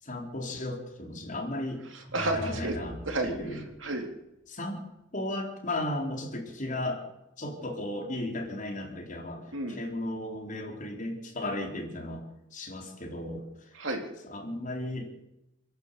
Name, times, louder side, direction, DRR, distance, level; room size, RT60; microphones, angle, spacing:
voice 1, 0.0-1.8 2.3-3.0 3.2-3.6 4.5-4.8 5.1-7.1 7.4-12.2 12.5-13.7 14.2-15.3, left 1 dB, 40° left, 1 dB, 4.3 m, -35 dB
voice 2, 1.9-2.8 3.1-4.1 9.5-9.8 13.7-14.0, right 1 dB, 70° right, 3 dB, 4.0 m, -32 dB
sound 1, 2.0-3.9, right 1 dB, 20° right, 1.3 m, -42 dB
28.0 x 11.5 x 8.5 m, 0.89 s
head